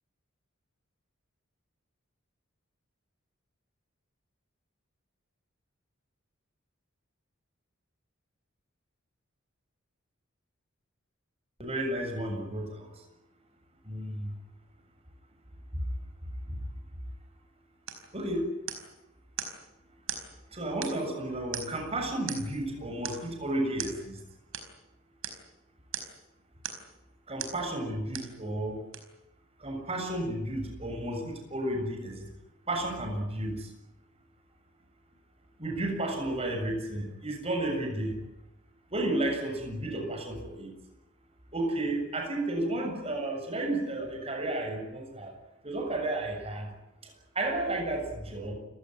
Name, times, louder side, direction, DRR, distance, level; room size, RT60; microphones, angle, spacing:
voice 1, 11.6-12.9 13.8-14.3 15.7-15.9 16.5-16.6 18.1-18.5 20.5-24.2 27.3-28.8 29.6-32.3 32.7-33.7 35.6-38.2 38.9-40.7 41.5-45.3 45.6-46.7 47.0-48.5, right 1 dB, 30° right, 3 dB, 7.2 m, -32 dB
sound 1, 17.9-18.1 18.7-19.0 19.4-19.6 20.1-20.3 20.8-21.1 21.5-21.9 22.3-22.6 23.0-23.3 23.8-24.0 24.5-24.7 25.2-25.4 25.9-26.2 26.6-26.9 27.4-27.6 28.1-28.4 28.9-29.0, right 8 dB, 80° right, 4.6 m, -38 dB
29.5 x 17.0 x 9.4 m, 0.92 s
head